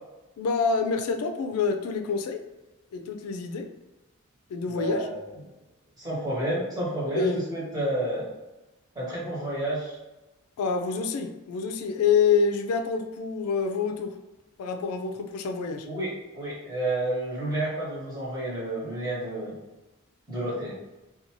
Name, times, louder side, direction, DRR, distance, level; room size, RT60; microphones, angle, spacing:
voice 1, 0.4-2.4 2.9-3.7 4.5-5.1 7.1-7.4 10.6-14.1 14.6-15.9, left 5 dB, 90° left, 5 dB, 0.3 m, -27 dB
voice 2, 4.7-5.2 6.0-8.3 8.9-10.0 15.8-19.6 20.3-20.7, right 1 dB, 20° right, -8 dB, 1.1 m, -30 dB
2.6 x 2.3 x 2.9 m, 1.1 s
head